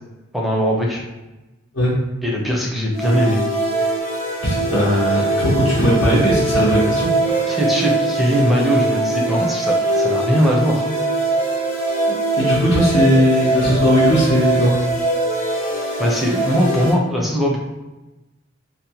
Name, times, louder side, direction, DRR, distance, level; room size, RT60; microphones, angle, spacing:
voice 1, 0.3-1.0 2.2-3.4 7.5-10.9 16.0-17.6, equal, ahead, -3 dB, 0.5 m, -20 dB
sound 1, 2.9-16.9, right 2 dB, 45° left, 0.9 m, -21 dB
voice 2, 4.4-7.6 12.4-14.8, equal, 85° left, -7 dB, 0.8 m, -18 dB
2.7 x 2.1 x 2.8 m, 1.1 s
head